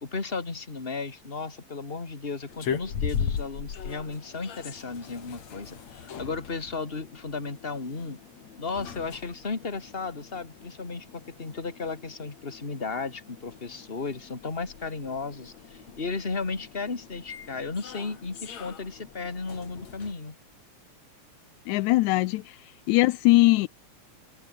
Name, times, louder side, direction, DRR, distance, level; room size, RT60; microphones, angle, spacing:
voice 1, 0.0-8.2 8.6-20.4, left 4 dB, 20° left, 2.7 m, -35 dB
sound 1, 2.5-20.1, left 7 dB, 65° left, 3.7 m, -39 dB
voice 2, 21.7-22.6 22.9-23.7, left 19 dB, 80° left, 2.0 m, -21 dB
omnidirectional pair, 3.4 m